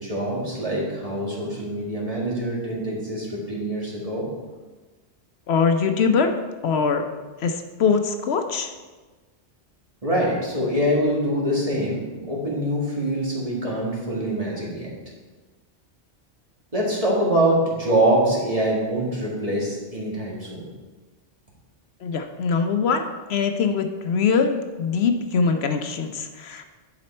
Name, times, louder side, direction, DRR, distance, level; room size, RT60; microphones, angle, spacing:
voice 1, 0.0-4.3 10.0-14.9 16.7-20.7, right 1 dB, 30° right, -4 dB, 2.0 m, -24 dB
voice 2, 5.5-6.3 6.6-7.0 7.4-8.7 22.0-26.7, left 5 dB, 70° left, 6 dB, 0.9 m, -22 dB
10.5 x 5.1 x 4.3 m, 1.3 s
omnidirectional pair, 1.1 m